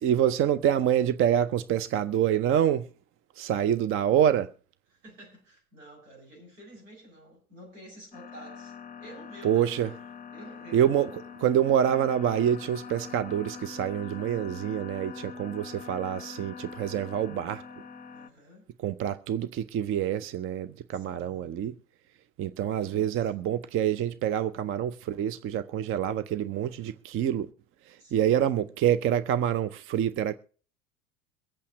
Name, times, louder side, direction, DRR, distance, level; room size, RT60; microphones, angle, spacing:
voice 1, 0.0-2.9 3.4-4.5 9.4-9.9 10.7-11.1 11.4-17.6 18.8-21.7 22.4-27.5 27.9-30.4, right 10 dB, 35° right, 0.6 m, -26 dB
voice 2, 4.9-8.7 9.0-9.7 10.3-10.9 18.1-18.7 20.9-21.5 22.6-23.3 28.0-28.5, right 1 dB, 75° right, 7.4 m, -50 dB
sound 1, 8.1-18.3, left 5 dB, 20° left, 0.8 m, -43 dB
23.0 x 8.4 x 3.0 m
figure-of-eight pair, 75°, 40 cm